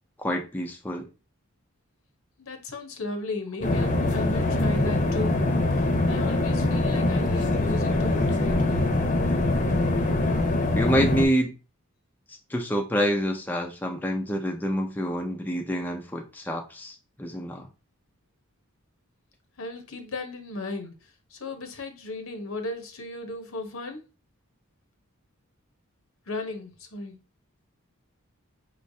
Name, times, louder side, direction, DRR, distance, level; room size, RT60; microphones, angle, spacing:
voice 1, 0.2-1.1 10.7-11.6 12.3-17.7, equal, 10° left, 0.5 m, -27 dB
voice 2, 2.4-8.9 19.6-24.0 26.3-27.2, left 2 dB, 70° left, 1.0 m, -36 dB
sound 1, 3.6-11.2, left 2 dB, 35° left, 0.8 m, -23 dB
5.5 x 3.2 x 2.7 m
head